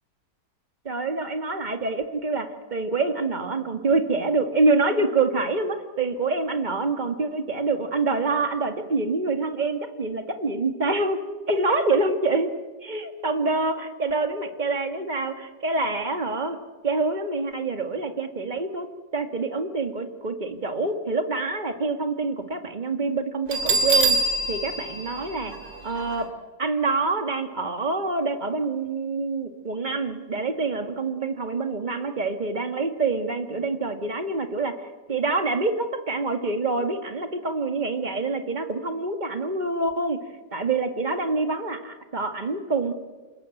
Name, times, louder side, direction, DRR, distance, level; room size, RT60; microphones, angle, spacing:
voice 1, 0.9-12.5 12.8-16.6 16.8-18.9 19.1-24.2 24.5-25.5 25.8-26.3 26.6-34.8 35.1-40.2 40.5-42.9, right 3 dB, 25° right, 7 dB, 1.9 m, -26 dB
Bell, 23.5-26.2, right 2 dB, 70° right, 3.3 m, -24 dB
27.5 x 20.0 x 9.1 m, 1.3 s
omnidirectional pair, 2.0 m